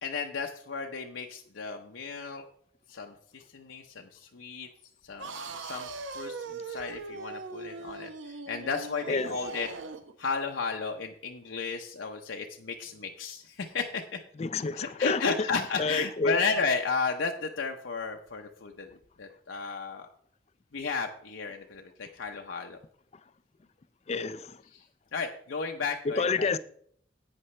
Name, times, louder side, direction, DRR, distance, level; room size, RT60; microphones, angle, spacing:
voice 1, 0.0-2.4 2.9-4.7 5.0-9.7 10.2-14.0 14.7-18.9 19.2-20.1 20.7-22.8 24.7-24.8 25.1-26.6, left 5 dB, 75° left, 0.7 m, -34 dB
sound 1, 5.2-10.1, right 4 dB, 80° right, 0.8 m, -40 dB
voice 2, 14.4-15.5 15.8-16.4 24.1-24.6 26.1-26.6, left 4 dB, 35° left, 0.4 m, -29 dB
11.0 x 8.9 x 3.2 m
head